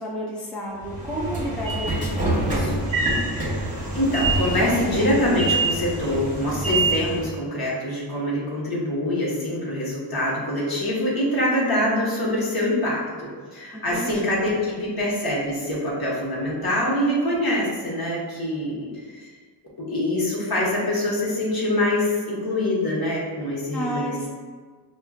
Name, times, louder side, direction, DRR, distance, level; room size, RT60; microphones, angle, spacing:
voice 1, 0.0-2.9 13.7-14.4 23.7-24.3, equal, ahead, -4 dB, 0.5 m, -32 dB
Train / Sliding door, 0.8-7.3, right 2 dB, 15° right, 1.1 m, -25 dB
voice 2, 3.9-19.3 19.9-24.3, left 1 dB, 55° left, -5 dB, 1.3 m, -24 dB
5.4 x 2.5 x 2.4 m, 1.5 s
wide cardioid pair, 90°, 44 cm